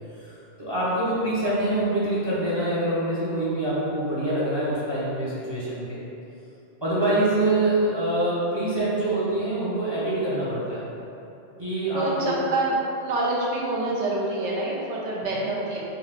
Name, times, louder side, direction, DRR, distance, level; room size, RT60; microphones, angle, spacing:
voice 1, 0.6-6.0 6.8-10.9 11.6-12.3 15.3-15.5, right 1 dB, 30° right, -9 dB, 0.6 m, -25 dB
voice 2, 11.9-12.7 13.0-15.8, right 2 dB, 80° right, -5 dB, 1.0 m, -27 dB
3.7 x 2.8 x 3.3 m, 2.9 s
omnidirectional pair, 1.2 m